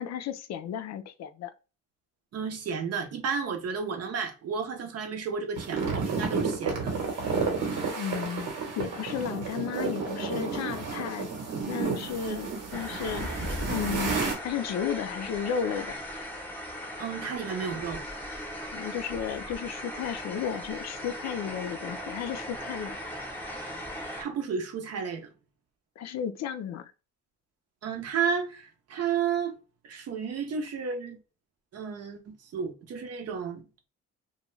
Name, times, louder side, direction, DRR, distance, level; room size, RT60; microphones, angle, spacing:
voice 1, 0.0-1.5 7.9-11.3 11.7-14.2 14.4-16.0 18.7-23.0 26.0-26.9, left 8 dB, 60° left, 0.4 m, -34 dB
voice 2, 2.3-6.9 17.0-18.0 24.2-25.3 27.8-29.5 29.8-31.2 31.7-33.6, right 6 dB, 55° right, 0.7 m, -32 dB
sound 1, 5.6-14.3, right 4 dB, 80° right, 1.2 m, -31 dB
sound 2, 12.7-24.2, equal, 5° left, 0.8 m, -38 dB
2.3 x 2.2 x 3.0 m
cardioid pair, 90°, 30 cm